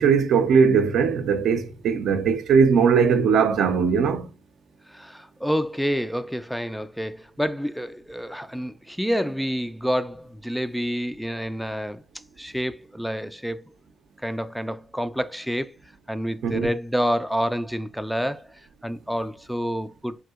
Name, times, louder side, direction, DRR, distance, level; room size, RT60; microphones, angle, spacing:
voice 1, 0.0-4.3 16.4-16.7, right 6 dB, 70° right, 0.5 m, -19 dB
voice 2, 4.9-12.0 12.4-13.6 14.2-15.8 16.1-20.2, equal, ahead, 0.3 m, -28 dB
3.6 x 2.7 x 2.3 m
supercardioid pair, 60°, 0 cm